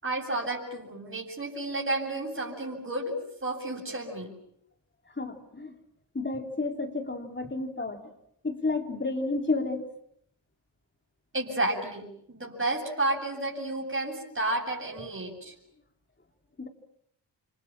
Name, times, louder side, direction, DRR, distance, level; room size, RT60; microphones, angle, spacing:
voice 1, 0.0-4.3 11.3-15.5, right 2 dB, 25° right, -2 dB, 7.9 m, -31 dB
voice 2, 5.1-5.7 6.1-8.0 8.4-9.9 16.6-16.7, left 3 dB, 25° left, 4 dB, 4.0 m, -31 dB
30.0 x 26.5 x 7.5 m, 0.72 s
cardioid pair, 75°, 45 cm